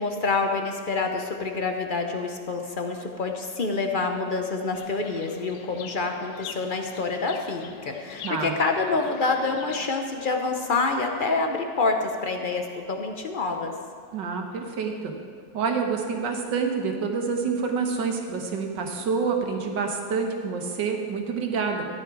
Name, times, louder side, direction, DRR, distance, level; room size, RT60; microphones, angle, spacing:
voice 1, 0.0-13.7, left 3 dB, 55° left, 4 dB, 0.5 m, -27 dB
Chirp tweet, 4.7-9.9, left 8 dB, 80° left, 1.3 m, -43 dB
voice 2, 8.2-8.6 14.1-15.1 15.5-21.9, right 5 dB, 80° right, 3 dB, 1.9 m, -27 dB
14.0 x 10.0 x 4.7 m, 2.3 s
omnidirectional pair, 1.9 m